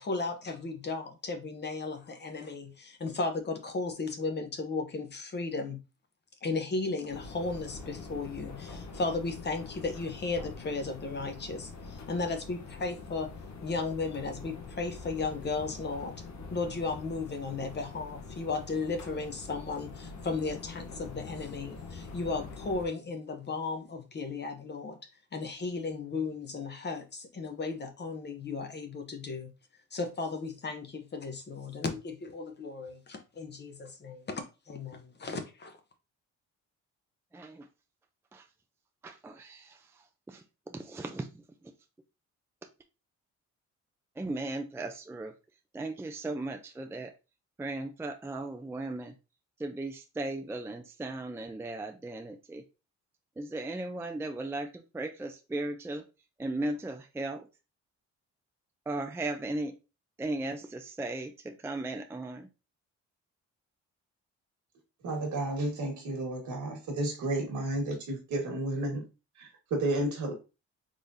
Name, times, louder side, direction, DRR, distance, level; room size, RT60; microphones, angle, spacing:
voice 1, 0.0-5.8 6.4-13.3 13.6-16.2 16.5-25.0 25.3-29.5 29.9-35.8, left 3 dB, 35° left, 0.9 m, -35 dB
sound 1, 7.1-22.9, left 4 dB, 65° left, 1.0 m, -45 dB
voice 2, 37.3-37.7 38.3-38.4 39.0-39.8 40.3-40.4 40.7-41.3 44.2-45.3 45.7-47.1 47.6-49.1 49.6-52.6 53.4-56.0 56.4-57.5 58.9-59.7 60.2-62.5, right 2 dB, 10° right, 0.4 m, -36 dB
voice 3, 65.0-69.0 69.4-70.3, right 2 dB, 70° right, 1.6 m, -32 dB
3.8 x 3.2 x 2.6 m
cardioid pair, 90°, 30 cm